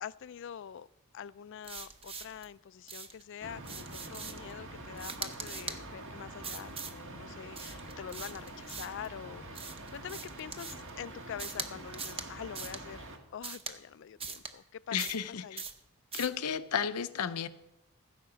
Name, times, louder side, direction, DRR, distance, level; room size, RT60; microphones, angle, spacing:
voice 1, 0.0-0.9 1.1-15.0 15.4-15.6, left 8 dB, 55° left, 18 dB, 0.3 m, -45 dB
sound 1, 1.6-2.5 2.9-3.2 3.6-4.5 5.0-5.8 6.4-7.0 7.5-9.1 9.5-10.9 11.4-11.7 11.9-12.3 12.5-12.8 13.4-13.8 14.2-14.5 15.0-15.3 15.6-15.8 16.1-16.4, right 5 dB, 25° right, 0.8 m, -42 dB
sound 2, 3.4-13.2, right 2 dB, 60° right, 1.5 m, -46 dB
voice 2, 14.9-15.6 16.1-17.5, left 7 dB, 90° left, 12 dB, 0.7 m, -33 dB
15.0 x 5.8 x 7.9 m, 0.92 s
head